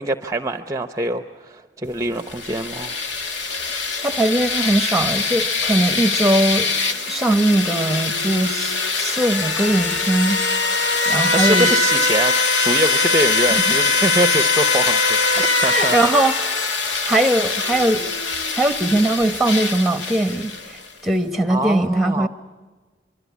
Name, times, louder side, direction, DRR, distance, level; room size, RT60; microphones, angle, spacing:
voice 1, 0.0-3.0 11.3-16.0 21.5-22.3, right 1 dB, 15° right, 0.7 m, -24 dB
sound 1, 2.2-20.9, left 4 dB, 85° left, 2.2 m, -22 dB
voice 2, 4.0-6.8 7.1-10.4 11.0-11.7 15.6-18.1 18.5-22.3, right 1 dB, ahead, 1.1 m, -20 dB
24.5 x 24.0 x 8.4 m
head